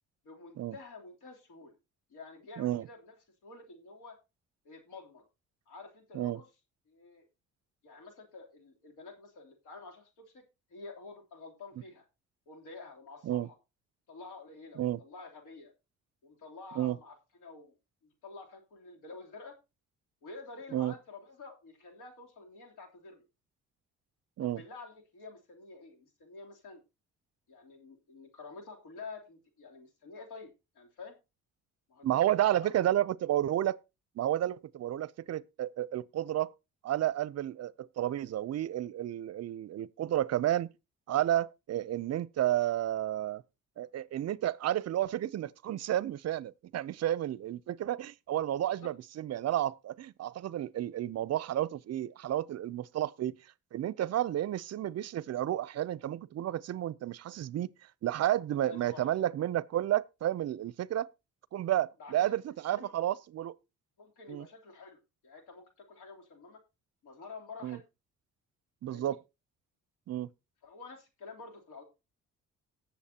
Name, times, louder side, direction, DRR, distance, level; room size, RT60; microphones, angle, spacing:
voice 1, 0.2-1.7 2.1-3.1 3.4-4.2 4.6-5.2 5.7-6.5 6.9-7.3 7.8-10.4 10.7-12.0 12.5-13.5 14.1-15.7 16.2-17.7 18.0-19.5 20.2-23.2 24.4-26.8 27.5-31.1 31.9-32.7 48.8-48.9 58.6-59.2 62.0-62.4 62.7-62.9 64.0-66.6 67.0-67.8 68.9-69.2 70.6-71.8, left 3 dB, 85° left, 3.3 m, -49 dB
voice 2, 2.6-2.9 6.1-6.4 13.2-13.5 14.8-15.0 16.8-17.0 20.7-20.9 24.4-24.6 32.0-33.8 34.2-36.5 36.8-40.7 41.1-43.4 43.8-53.4 53.7-57.7 58.0-61.1 61.5-63.6 64.3-64.5 67.6-67.8 68.8-69.2 70.1-70.3, right 12 dB, 55° right, 0.5 m, -31 dB
19.0 x 7.1 x 2.8 m
cardioid pair, 90°, 30 cm